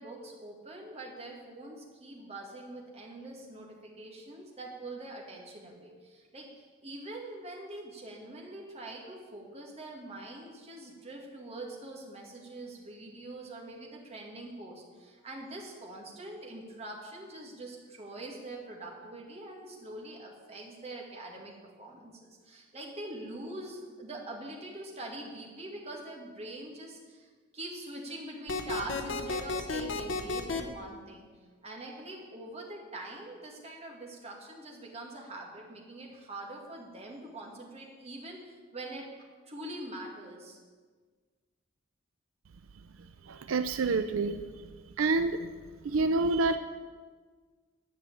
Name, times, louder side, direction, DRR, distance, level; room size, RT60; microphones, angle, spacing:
voice 1, 0.0-31.3 31.6-39.1 39.5-40.6, right 2 dB, 30° right, -1 dB, 2.1 m, -44 dB
sound 1, 28.5-30.6, left 3 dB, 65° left, 0.9 m, -32 dB
voice 2, 43.2-44.7 45.0-45.5 45.8-46.6, right 3 dB, 85° right, 9 dB, 0.5 m, -28 dB
10.5 x 6.2 x 8.4 m, 1.5 s
head